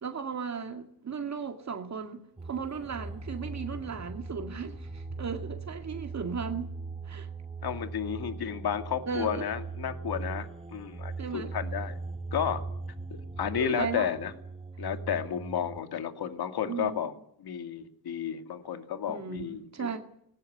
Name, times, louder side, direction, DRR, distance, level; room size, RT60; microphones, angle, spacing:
voice 1, 0.0-6.7 7.1-7.3 9.1-9.5 11.2-11.5 13.5-14.1 16.7-17.0 19.1-20.0, right 6 dB, 45° right, 2.1 m, -36 dB
sound 1, 2.4-15.8, right 3 dB, 15° right, 1.2 m, -40 dB
voice 2, 7.6-12.0 12.3-12.6 13.1-14.3 14.8-17.1 17.4-20.0, left 8 dB, 75° left, 2.3 m, -32 dB
20.5 x 18.5 x 9.6 m
wide cardioid pair, 150°, 38 cm